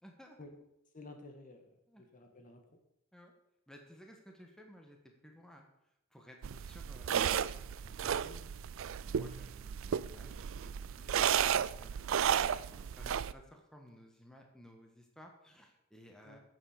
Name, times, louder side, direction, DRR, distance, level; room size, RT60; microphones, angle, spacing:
voice 1, 0.0-0.4 1.9-2.0 3.1-3.3 3.7-5.7 6.1-7.6 7.9-8.5 9.0-16.4, equal, 5° left, 2 dB, 1.4 m, -57 dB
voice 2, 0.9-2.7 16.2-16.4, left 2 dB, 40° left, 4 dB, 1.6 m, -53 dB
sound 1, 6.4-13.3, right 8 dB, 75° right, 0.4 m, -33 dB
9.6 x 7.4 x 7.3 m, 0.83 s
head